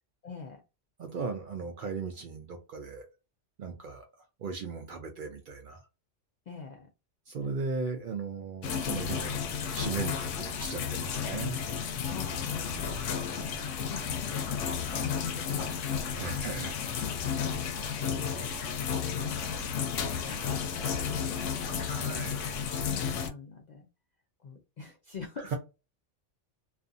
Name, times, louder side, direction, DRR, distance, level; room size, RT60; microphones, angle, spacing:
voice 1, 0.2-0.6 6.5-6.9 12.1-12.8 13.3-15.7 16.2-16.9 17.3-22.3 22.9-23.9 24.4-25.5, left 4 dB, 60° left, 0.4 m, -46 dB
voice 2, 1.0-3.1 3.6-4.1 4.4-5.8 7.3-9.4 9.7-11.6 16.2-16.9 19.2-19.3 21.7-22.7 25.4-25.5, right 4 dB, 60° right, 0.6 m, -37 dB
sound 1, 8.6-23.3, left 7 dB, 85° left, 0.9 m, -32 dB
2.5 x 2.4 x 2.5 m
omnidirectional pair, 1.2 m